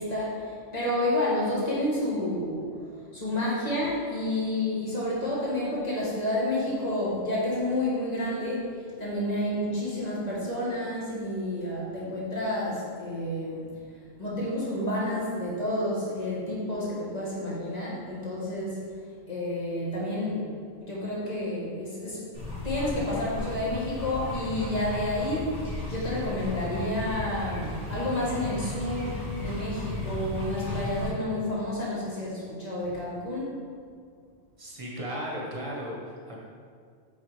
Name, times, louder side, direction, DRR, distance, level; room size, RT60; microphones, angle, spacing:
voice 1, 0.0-13.7 14.2-18.8 19.3-20.5 20.8-22.2 22.6-33.5, left 1 dB, 35° left, -6 dB, 1.8 m, -30 dB
sound 1, 22.3-31.1, left 2 dB, 75° left, 2.1 m, -35 dB
voice 2, 34.6-36.4, equal, 30° right, -3 dB, 1.3 m, -35 dB
7.6 x 5.1 x 3.4 m, 2.1 s
omnidirectional pair, 1.2 m